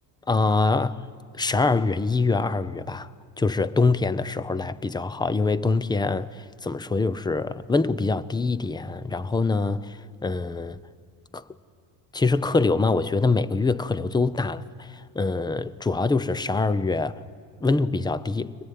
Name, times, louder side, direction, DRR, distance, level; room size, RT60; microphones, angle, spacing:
voice 1, 0.3-1.0 1.3-3.1 3.4-10.8 11.3-11.4 12.1-17.2 17.6-18.6, left 3 dB, 10° left, 0.6 m, -24 dB
24.5 x 19.5 x 9.3 m
cardioid pair, 120°, 42 cm